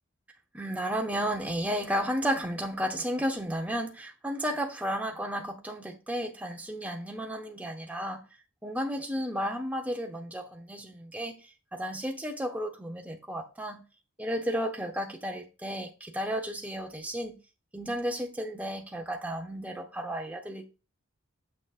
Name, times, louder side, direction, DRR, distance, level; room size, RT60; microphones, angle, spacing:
voice 1, 0.5-8.2 8.6-13.8 14.2-17.4 17.7-20.7, equal, 5° right, 0.8 m, -33 dB
6.9 x 6.0 x 2.5 m
head